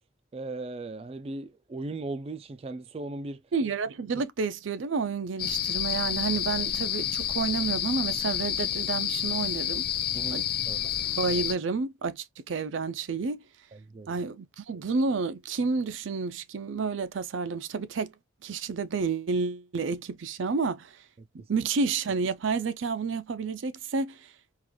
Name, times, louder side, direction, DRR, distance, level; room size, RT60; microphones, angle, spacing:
voice 1, 0.3-3.4 4.1-4.2 10.1-10.8 13.7-14.2, right 2 dB, 30° right, 0.3 m, -38 dB
voice 2, 3.5-9.9 10.3-10.4 11.1-13.4 14.1-18.1 18.4-21.0 21.3-24.3, right 4 dB, 90° right, 0.5 m, -30 dB
sound 1, 5.4-11.5, left 10 dB, 50° left, 0.5 m, -29 dB
3.8 x 2.4 x 3.0 m
head